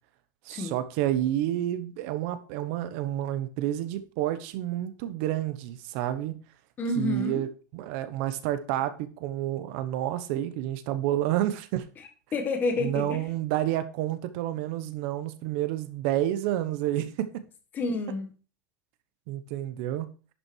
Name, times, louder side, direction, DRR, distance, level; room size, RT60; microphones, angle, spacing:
voice 1, 0.4-6.4 7.0-7.5 7.7-11.8 12.8-17.3 19.3-20.1, right 13 dB, 40° right, 1.0 m, -29 dB
voice 2, 6.8-7.4 12.3-13.3 17.7-18.3, left 3 dB, 20° left, 1.7 m, -29 dB
11.0 x 6.1 x 4.6 m
supercardioid pair, 175°, 10 cm